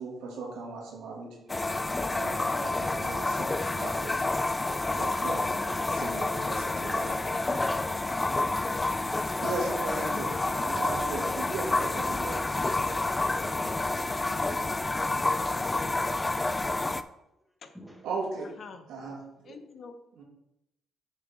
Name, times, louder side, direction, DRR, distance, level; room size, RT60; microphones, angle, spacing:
voice 1, 0.0-1.6 2.1-4.3 4.6-5.3 5.9-7.2 9.4-10.3 10.6-13.0 16.8-16.9 18.0-18.5 18.9-19.6 20.2-20.3, right 3 dB, 85° right, -1 dB, 2.3 m, -38 dB
sound 1, 1.5-17.0, left 2 dB, 20° left, 0.4 m, -29 dB
voice 2, 17.7-18.1, equal, 5° right, 2 dB, 1.6 m, -55 dB
voice 3, 18.4-18.9 19.4-20.0, left 5 dB, 55° left, 8 dB, 0.9 m, -48 dB
7.5 x 6.5 x 4.0 m, 0.85 s
cardioid pair, 90°, 0 cm